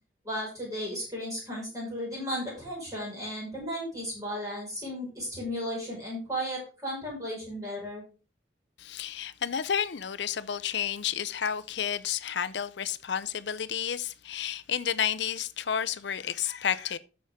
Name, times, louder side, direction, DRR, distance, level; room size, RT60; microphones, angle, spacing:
voice 1, 0.2-8.0, equal, 20° right, 5.4 m, -35 dB
voice 2, 8.8-17.0, left 8 dB, 65° left, 0.6 m, -31 dB
10.5 x 7.1 x 3.7 m
head